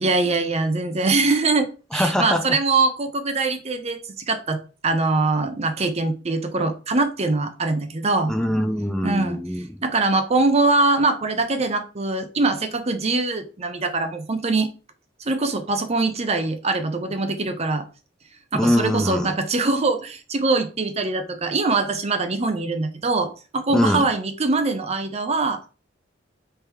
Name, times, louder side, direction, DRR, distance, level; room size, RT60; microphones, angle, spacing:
voice 1, 0.0-8.3 9.0-9.4 9.8-14.7 15.2-17.8 18.5-25.6, right 3 dB, 35° right, 8 dB, 0.6 m, -23 dB
voice 2, 1.9-2.6 8.3-9.8 18.5-19.3 23.7-24.1, left 1 dB, 5° left, 6 dB, 0.4 m, -22 dB
3.3 x 2.9 x 4.7 m, 0.34 s
head